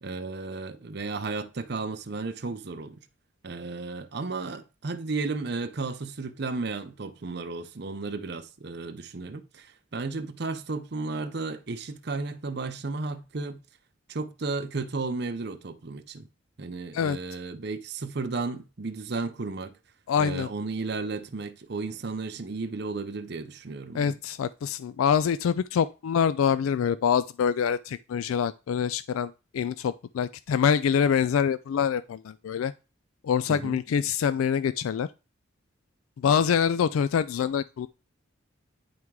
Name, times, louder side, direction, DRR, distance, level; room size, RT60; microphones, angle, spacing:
voice 1, 0.0-3.0 3.4-13.6 14.1-16.3 16.6-19.8 20.2-24.2 33.5-33.8, right 3 dB, 55° right, 0.7 m, -34 dB
voice 2, 20.1-20.5 23.9-32.7 33.2-35.1 36.2-37.9, left 7 dB, 85° left, 0.3 m, -25 dB
9.6 x 3.6 x 4.7 m
head